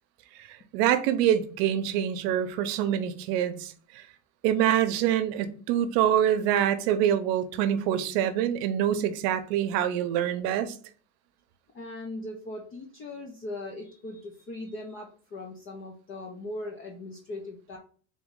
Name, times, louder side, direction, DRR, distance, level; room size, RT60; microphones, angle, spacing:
voice 1, 0.4-4.0 4.4-10.7, right 10 dB, 80° right, 0.8 m, -25 dB
voice 2, 11.7-17.8, left 2 dB, 30° left, 0.5 m, -39 dB
3.8 x 3.0 x 3.7 m
cardioid pair, 155°, 48 cm